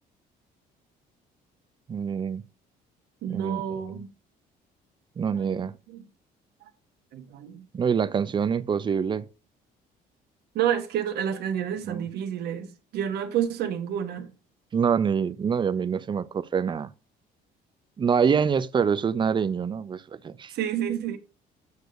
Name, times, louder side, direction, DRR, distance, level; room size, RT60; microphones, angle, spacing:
voice 1, 1.9-2.4 3.3-3.6 5.2-5.7 7.7-9.3 11.8-12.1 14.7-16.9 18.0-20.5, right 6 dB, 30° right, 0.5 m, -25 dB
voice 2, 3.2-4.1 5.4-6.0 7.1-7.7 10.5-12.7 12.9-14.3 20.5-21.2, right 9 dB, 75° right, 1.1 m, -29 dB
8.0 x 6.7 x 2.5 m
cardioid pair, 110°, 17 cm